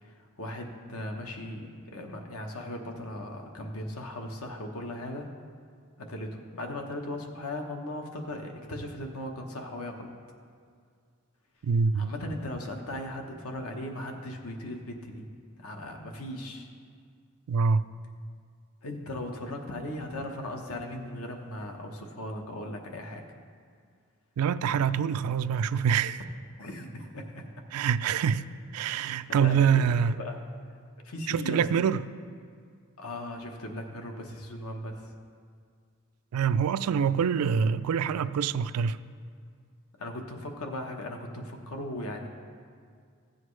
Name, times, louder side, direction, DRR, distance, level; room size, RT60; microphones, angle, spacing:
voice 1, 0.0-5.3 6.0-10.1 11.9-15.3 15.6-16.7 18.8-23.2 26.6-27.4 29.3-30.4 31.0-31.7 33.0-35.1 40.0-42.3, left 1 dB, 80° left, 3 dB, 1.1 m, -38 dB
voice 2, 11.6-12.1 17.5-17.9 24.4-26.2 27.7-28.4 28.7-30.1 31.3-32.0 36.3-39.0, right 7 dB, 85° right, 14 dB, 0.3 m, -25 dB
15.5 x 7.7 x 3.2 m, 2.1 s
head